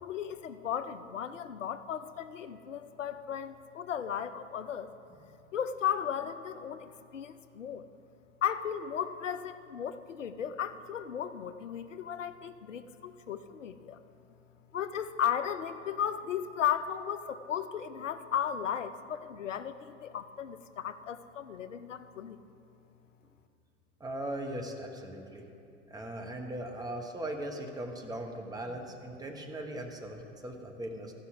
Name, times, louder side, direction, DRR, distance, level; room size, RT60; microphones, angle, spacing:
voice 1, 0.0-4.9 5.5-7.9 8.4-14.0 14.7-22.4, left 9 dB, 85° left, 12 dB, 0.5 m, -35 dB
voice 2, 24.0-25.5 25.9-31.1, right 1 dB, 10° right, 2 dB, 1.1 m, -39 dB
14.0 x 5.7 x 5.9 m, 2.7 s
figure-of-eight pair, 90°, 37 cm